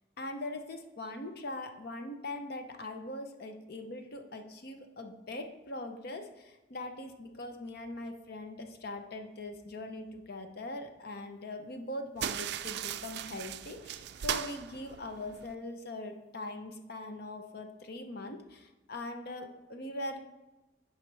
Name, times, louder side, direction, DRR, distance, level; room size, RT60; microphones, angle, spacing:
voice 1, 0.2-20.2, left 2 dB, 60° left, 6 dB, 0.8 m, -41 dB
sound 1, 12.2-15.6, right 10 dB, 65° right, 0.3 m, -38 dB
9.4 x 4.8 x 3.4 m, 1.0 s
head